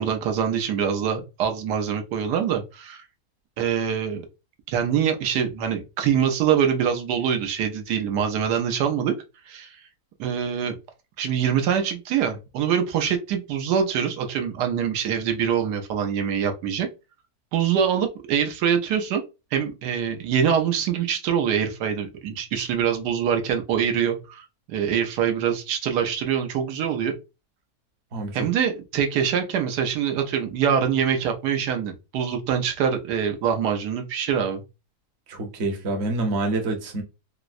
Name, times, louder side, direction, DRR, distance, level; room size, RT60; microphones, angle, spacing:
voice 1, 0.0-3.0 3.6-4.2 4.7-9.1 9.5-9.8 10.2-10.8 11.2-16.9 17.5-19.2 19.5-27.1 28.3-34.6, right 8 dB, 90° right, 1.3 m, -24 dB
voice 2, 28.1-28.5 35.3-37.0, right 2 dB, 50° right, 1.0 m, -27 dB
4.4 x 2.0 x 2.4 m
omnidirectional pair, 1.7 m